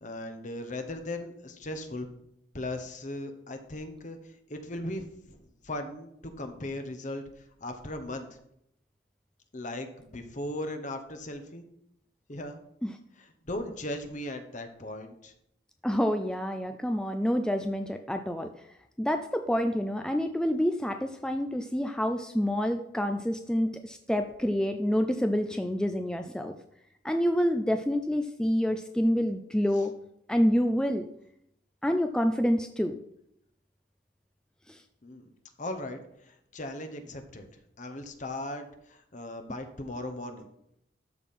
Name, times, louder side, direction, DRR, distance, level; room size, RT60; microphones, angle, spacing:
voice 1, 0.0-2.1 2.5-8.3 9.5-11.6 12.3-12.6 13.2-15.3 35.0-35.3 35.6-37.5 37.8-40.5, left 1 dB, 45° left, 7 dB, 1.1 m, -38 dB
voice 2, 15.8-18.5 19.0-26.5 27.0-29.9 30.3-31.1 31.8-33.0 34.7-34.8, equal, 5° left, 6 dB, 0.4 m, -27 dB
12.5 x 4.4 x 5.5 m, 0.76 s
head